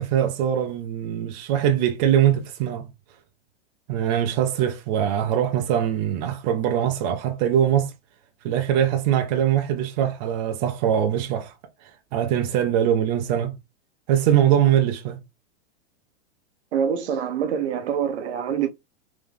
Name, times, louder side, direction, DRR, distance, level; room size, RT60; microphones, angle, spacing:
voice 1, 0.0-2.8 3.9-7.9 8.4-11.5 12.1-13.5 14.1-15.2, right 10 dB, 40° right, 0.7 m, -22 dB
voice 2, 16.7-18.7, right 8 dB, 75° right, 0.9 m, -25 dB
3.6 x 3.0 x 3.4 m
supercardioid pair, 150°, 34 cm